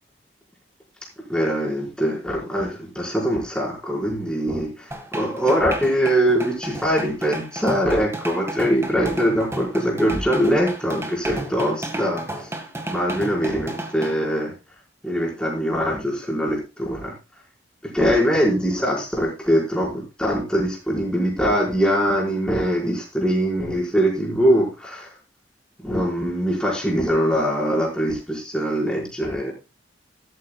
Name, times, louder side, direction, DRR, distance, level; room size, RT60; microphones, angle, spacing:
voice 1, 1.3-4.8 5.1-12.5 12.9-14.5 15.0-17.1 17.8-25.1 25.8-29.5, equal, 5° left, -3 dB, 4.8 m, -22 dB
sound 1, 4.9-14.1, right 1 dB, 15° right, 1.8 m, -33 dB
13.0 x 13.0 x 2.3 m, 0.29 s
head